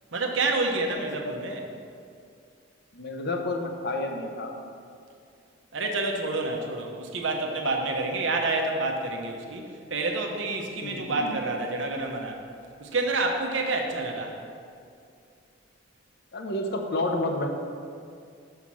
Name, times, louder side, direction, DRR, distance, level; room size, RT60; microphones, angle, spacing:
voice 1, 0.1-1.7 5.7-12.4 12.8-14.4, right 2 dB, 65° right, 1 dB, 0.9 m, -28 dB
voice 2, 2.9-4.5 10.8-11.4 16.3-17.5, left 2 dB, 55° left, 3 dB, 0.7 m, -30 dB
5.7 x 5.6 x 6.1 m, 2.4 s
head